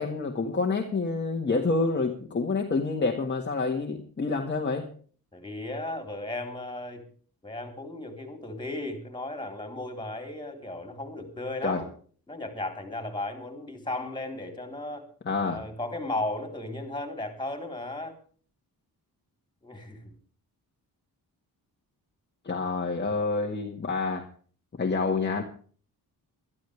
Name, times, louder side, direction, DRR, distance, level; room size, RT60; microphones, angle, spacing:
voice 1, 0.0-4.9 11.6-11.8 15.3-15.6 22.4-24.3 24.7-25.4, left 3 dB, 30° left, 1 dB, 1.8 m, -28 dB
voice 2, 5.3-7.0 7.4-11.9 12.3-15.0 15.4-18.2 19.6-20.1, left 2 dB, 10° left, 6 dB, 3.9 m, -35 dB
22.0 x 13.0 x 3.5 m, 0.43 s
wide cardioid pair, 160°, 36 cm